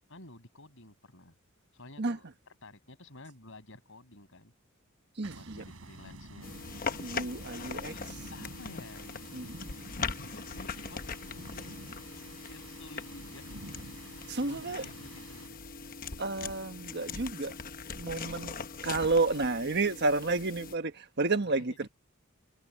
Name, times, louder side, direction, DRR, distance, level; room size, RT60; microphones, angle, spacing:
voice 1, 0.1-1.4 1.7-2.3 2.6-4.5 5.2-6.6 7.7-9.1 10.2-12.1 12.4-13.4 14.0-14.1 14.4-15.6 21.4-21.8, left 2 dB, 65° left, 7.3 m, -52 dB
voice 2, 2.0-2.3 5.2-5.7 7.0-8.3 9.3-9.6 14.3-14.9 16.2-17.5 18.0-21.9, right 3 dB, 50° right, 1.4 m, -31 dB
sound 1, 5.2-15.5, right 2 dB, 75° right, 4.3 m, -49 dB
sound 2, 6.4-20.8, left 5 dB, 40° left, 1.0 m, -41 dB
head